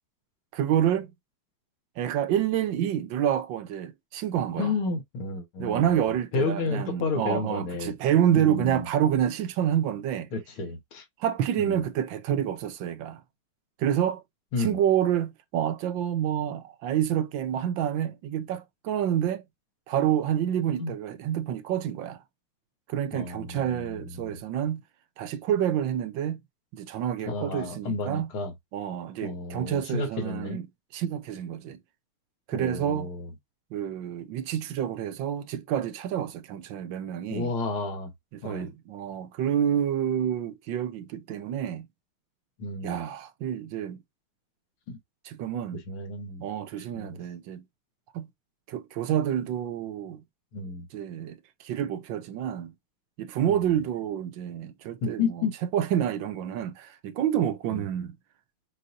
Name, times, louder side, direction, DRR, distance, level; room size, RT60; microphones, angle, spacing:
voice 1, 0.5-1.1 2.0-4.8 5.6-10.3 11.2-13.2 13.8-14.2 14.6-19.4 19.9-22.2 22.9-24.8 25.2-26.4 26.7-28.3 28.7-30.7 30.9-31.8 32.5-33.1 33.7-37.5 38.4-41.9 42.8-44.0 45.2-45.8 46.4-47.6 48.1-48.3 48.7-50.2 50.9-52.7 53.2-55.4 55.7-58.2, right 10 dB, 70° right, 1.3 m, -28 dB
voice 2, 4.6-6.0 6.3-7.9 8.3-8.8 10.3-11.1 11.6-11.8 14.5-14.8 20.8-20.9 23.1-23.9 24.2-24.4 27.3-28.5 29.2-30.6 32.5-33.3 37.3-38.1 38.4-38.7 42.6-43.0 44.9-45.0 45.9-46.4 47.0-47.2 50.5-50.9 53.5-53.7 55.0-55.5 57.7-57.8, left 3 dB, 85° left, 2.1 m, -31 dB
6.4 x 2.7 x 2.6 m
omnidirectional pair, 2.3 m